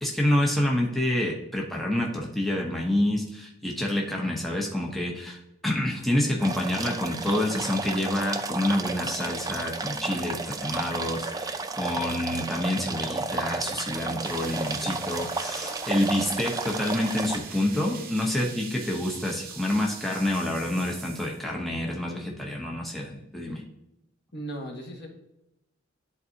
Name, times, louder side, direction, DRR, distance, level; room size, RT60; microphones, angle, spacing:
voice 1, 0.0-23.6, left 1 dB, ahead, -1 dB, 0.8 m, -28 dB
sound 1, 6.4-17.4, right 3 dB, 20° right, 0.4 m, -33 dB
sound 2, 14.2-21.4, right 5 dB, 45° right, 1.0 m, -43 dB
voice 2, 24.3-25.1, right 1 dB, 55° left, 1 dB, 1.5 m, -36 dB
10.5 x 4.0 x 2.8 m, 0.87 s
head